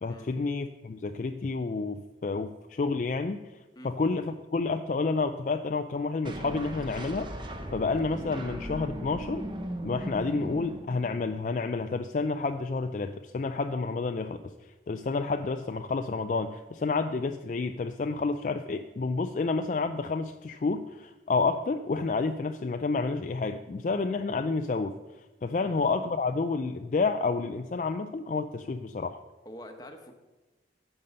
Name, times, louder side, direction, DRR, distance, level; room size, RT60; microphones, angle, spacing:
voice 1, 0.0-3.5 3.8-9.4 9.8-24.9 25.4-29.2, left 4 dB, 45° left, 7 dB, 0.3 m, -30 dB
sound 1, 6.2-11.4, right 1 dB, 25° right, 0.8 m, -38 dB
voice 2, 29.4-30.1, equal, 20° left, 4 dB, 1.0 m, -45 dB
10.5 x 7.0 x 5.3 m, 1.1 s
head